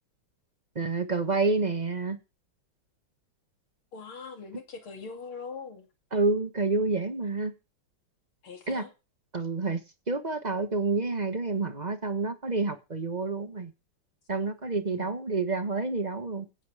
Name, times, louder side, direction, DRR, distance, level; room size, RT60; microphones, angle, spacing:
voice 1, 0.7-2.2 6.1-7.5 8.7-8.8 9.3-9.8 10.1-13.7 14.3-16.5, right 3 dB, 25° right, 1.1 m, -28 dB
voice 2, 3.9-5.9 8.4-8.9 14.9-15.1, left 5 dB, 85° left, 3.5 m, -42 dB
16.5 x 7.7 x 4.9 m
omnidirectional pair, 2.3 m